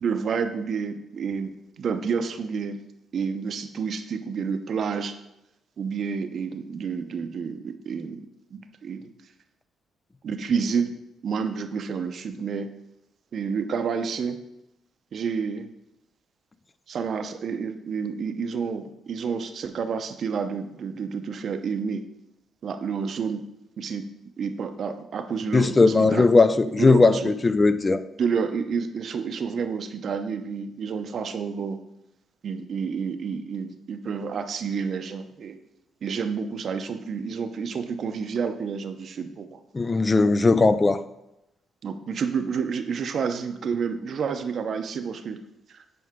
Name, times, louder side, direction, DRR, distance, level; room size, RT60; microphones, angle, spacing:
voice 1, 0.0-2.8 3.1-5.1 5.8-8.2 8.5-9.0 10.2-11.0 11.2-12.7 13.3-14.4 15.1-15.7 16.9-22.0 22.6-23.4 23.8-24.0 24.4-26.3 26.8-27.3 28.2-31.8 32.4-35.6 36.0-39.6 41.8-45.4, right 6 dB, 55° right, 8 dB, 0.7 m, -29 dB
voice 2, 25.5-28.0 39.7-41.0, left 3 dB, 25° left, 13 dB, 0.4 m, -18 dB
9.4 x 4.7 x 3.6 m, 0.89 s
cardioid pair, 90°, 0 cm